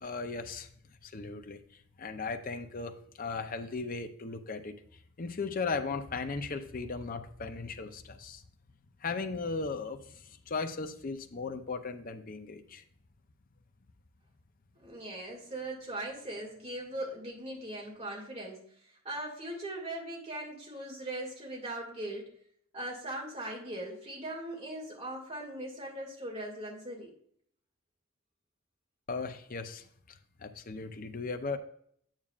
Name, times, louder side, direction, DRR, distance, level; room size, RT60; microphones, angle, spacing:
voice 1, 0.0-0.7 1.0-1.6 2.0-4.8 5.2-8.4 9.0-12.8 29.1-31.6, left 4 dB, 40° left, 7 dB, 0.6 m, -37 dB
voice 2, 14.8-18.6 19.0-22.3 22.7-27.1, right 1 dB, 30° right, -2 dB, 2.3 m, -39 dB
8.9 x 8.5 x 2.5 m, 0.64 s
head